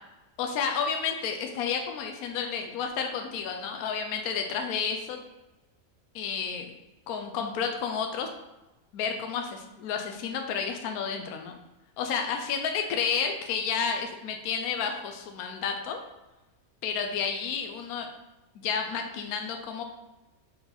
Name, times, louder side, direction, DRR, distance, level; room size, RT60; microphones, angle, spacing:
voice 1, 0.4-5.2 6.1-6.7 7.1-8.3 8.9-11.5 12.0-16.0 16.8-18.1 18.6-19.8, left 6 dB, 75° left, 4 dB, 1.1 m, -31 dB
5.5 x 4.2 x 4.2 m, 1.0 s
omnidirectional pair, 1.6 m